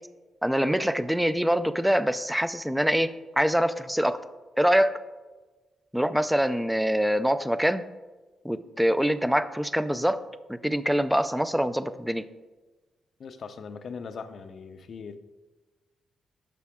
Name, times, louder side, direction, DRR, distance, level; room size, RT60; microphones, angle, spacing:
voice 1, 0.4-3.1 3.4-4.2 4.6-5.0 5.9-7.8 8.4-10.2 10.6-12.2, equal, 5° right, 13 dB, 0.4 m, -24 dB
voice 2, 13.2-15.2, left 5 dB, 55° left, 10 dB, 0.6 m, -40 dB
8.4 x 5.9 x 3.6 m, 1.2 s
cardioid pair, 90°, 0 cm